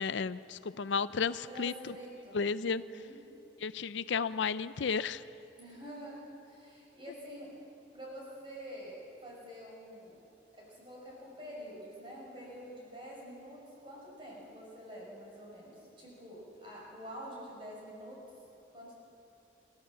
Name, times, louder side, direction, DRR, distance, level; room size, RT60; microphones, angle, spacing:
voice 1, 0.0-1.7 2.3-2.8 3.6-5.2, left 5 dB, 75° left, 14 dB, 0.5 m, -33 dB
voice 2, 1.5-2.4 2.6-3.2 5.6-7.6 7.9-8.9 9.2-10.2 10.5-18.2 18.7-19.0, equal, 25° right, -4 dB, 6.5 m, -47 dB
29.0 x 13.0 x 7.6 m, 3.0 s
head